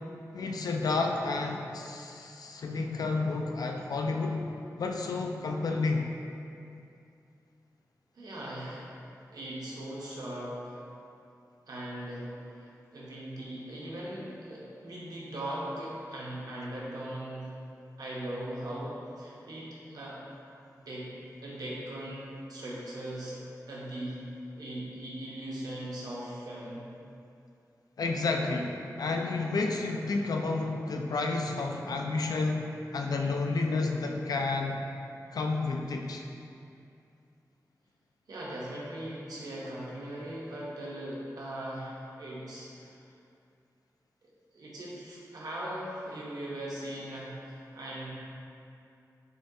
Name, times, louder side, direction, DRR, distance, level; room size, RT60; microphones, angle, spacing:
voice 1, 0.3-4.5 4.8-6.1 28.0-34.8 35.3-36.2, left 3 dB, 75° left, 2 dB, 0.3 m, -30 dB
voice 2, 8.1-8.9 9.3-10.8 11.7-12.3 12.5-17.5 18.0-20.2 20.8-21.1 21.4-23.4 23.7-24.2 24.6-26.9 38.3-43.1 44.5-48.1, right 1 dB, 85° right, -6 dB, 0.9 m, -39 dB
6.3 x 2.3 x 2.7 m, 2.6 s
wide cardioid pair, 100°, 7 cm